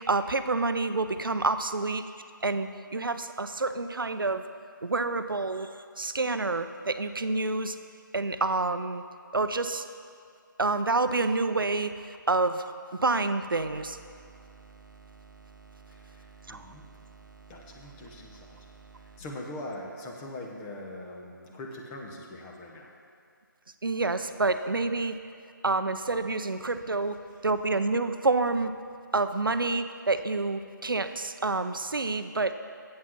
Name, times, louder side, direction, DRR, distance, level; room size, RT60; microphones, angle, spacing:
voice 1, 0.0-2.0 2.4-4.4 4.8-5.7 6.0-7.8 8.1-9.0 9.3-9.9 10.6-11.9 12.3-12.6 13.0-14.0 16.5-16.7 23.8-25.1 25.6-28.7 29.1-32.5, right 3 dB, 90° right, 10 dB, 0.5 m, -28 dB
sound 1, 13.5-19.2, right 4 dB, 60° right, 1.0 m, -52 dB
voice 2, 15.9-16.9 17.5-18.6 18.9-22.9, left 1 dB, 15° left, 0 dB, 0.9 m, -42 dB
8.4 x 7.3 x 6.0 m, 2.3 s
figure-of-eight pair, 150°, 11 cm